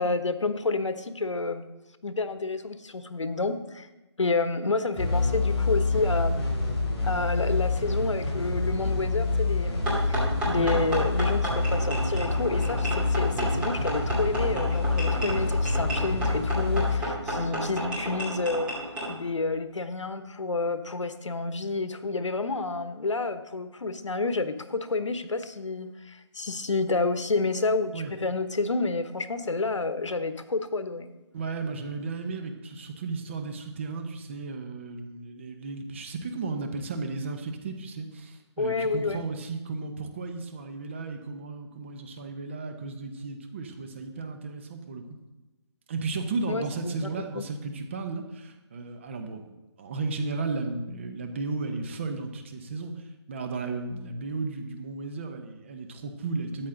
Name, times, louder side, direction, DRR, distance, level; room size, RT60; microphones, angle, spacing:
voice 1, 0.0-1.6 2.0-3.9 4.2-6.5 7.0-10.2 10.5-18.7 19.1-31.1 38.6-39.2 46.5-47.1 47.4-47.5, left 3 dB, 90° left, 10 dB, 1.1 m, -29 dB
sound 1, 4.9-18.3, left 3 dB, 20° left, 3.6 m, -27 dB
sound 2, 9.9-19.1, right 1 dB, 10° right, 2.5 m, -32 dB
voice 2, 31.3-45.1 45.9-56.7, right 3 dB, 25° right, 5 dB, 1.0 m, -34 dB
13.0 x 9.3 x 3.9 m, 1.1 s
hypercardioid pair, 165°, 15 cm